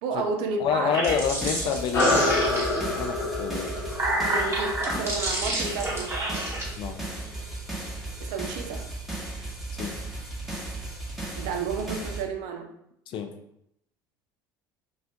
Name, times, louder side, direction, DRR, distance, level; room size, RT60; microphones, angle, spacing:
voice 1, 0.0-1.0 4.3-6.5 8.2-8.8 11.4-12.7, right 4 dB, 60° right, 4 dB, 0.5 m, -31 dB
voice 2, 0.6-3.7 6.8-7.0 9.7-10.0 13.1-13.3, left 7 dB, 45° left, 6 dB, 0.4 m, -28 dB
sound 1, 0.8-3.0 3.6-6.6, right 1 dB, 20° right, 1.1 m, -29 dB
sound 2, 1.1-12.2, right 2 dB, ahead, 0.9 m, -36 dB
sound 3, 1.9-6.8, left 2 dB, 80° left, 0.8 m, -28 dB
2.5 x 2.4 x 3.3 m, 0.75 s
figure-of-eight pair, 65°, 11 cm